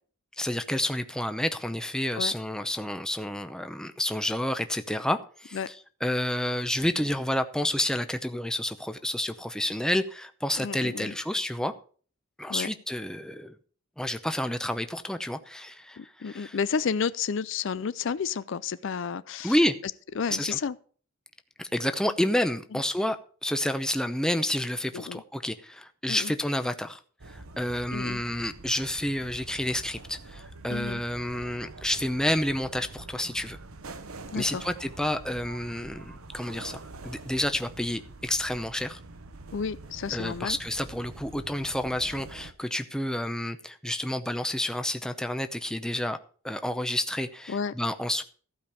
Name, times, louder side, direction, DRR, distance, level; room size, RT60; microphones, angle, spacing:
voice 1, 0.4-5.7 6.0-11.7 12.4-13.5 14.0-16.6 19.4-19.8 20.3-20.6 21.6-27.0 27.3-33.6 34.3-39.0 40.1-46.2 46.4-48.2, left 1 dB, 5° left, 0.7 m, -29 dB
voice 2, 10.6-11.1 12.5-12.7 16.0-19.6 20.2-20.8 22.7-22.8 24.9-25.2 26.1-26.3 27.9-28.2 30.7-31.0 34.3-34.6 39.5-40.6 47.5-47.7, left 6 dB, 60° left, 0.4 m, -31 dB
sound 1, 27.2-42.5, right 2 dB, 80° right, 1.1 m, -45 dB
15.0 x 5.2 x 7.0 m
head